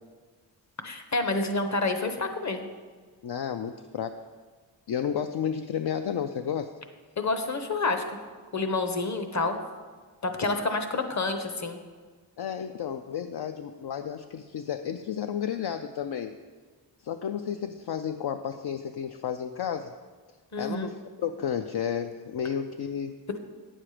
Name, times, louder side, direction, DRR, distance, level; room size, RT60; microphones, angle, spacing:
voice 1, 0.8-2.7 7.2-8.0 8.5-9.6 10.2-11.8 20.5-20.9, left 3 dB, 40° left, 7 dB, 1.0 m, -28 dB
voice 2, 3.2-4.2 4.9-6.7 12.4-16.3 17.0-19.9 20.6-23.2, left 8 dB, 60° left, 7 dB, 0.5 m, -32 dB
8.9 x 7.4 x 4.9 m, 1.5 s
wide cardioid pair, 80°, 44 cm